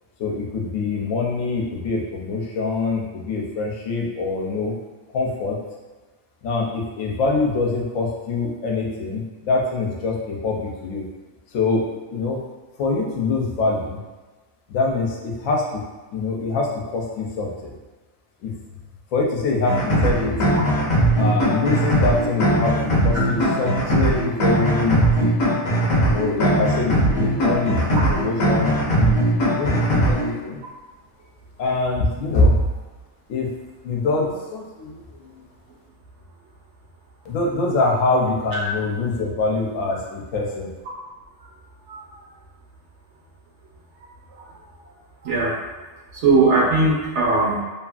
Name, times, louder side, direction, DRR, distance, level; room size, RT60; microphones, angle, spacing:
voice 1, 0.2-4.7 5.1-5.6 6.4-11.1 11.5-11.8 12.1-12.4 12.8-14.0 14.7-15.8 16.1-17.7 18.4-18.5 19.1-20.6 21.2-25.3 26.0-29.2 29.6-30.6 31.6-32.6 33.3-33.5 33.8-35.4 37.2-40.7, left 3 dB, 75° left, -2 dB, 0.9 m, -24 dB
sound 1, 19.7-30.3, right 1 dB, 55° left, 0.5 m, -20 dB
voice 2, 46.1-47.6, right 3 dB, 65° right, -4 dB, 0.9 m, -19 dB
2.8 x 2.4 x 2.3 m, 1.2 s
omnidirectional pair, 1.4 m